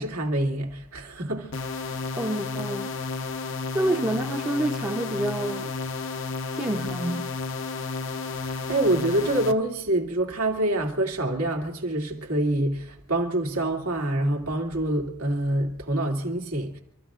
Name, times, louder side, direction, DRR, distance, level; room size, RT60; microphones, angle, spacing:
voice 1, 0.0-1.5 8.4-16.8, right 1 dB, 85° right, 2.6 m, -26 dB
sound 1, 1.5-9.5, left 4 dB, 60° left, 1.0 m, -32 dB
voice 2, 2.2-3.0 3.7-5.7 6.5-7.3, right 1 dB, 15° right, 0.8 m, -28 dB
29.5 x 14.0 x 2.5 m
head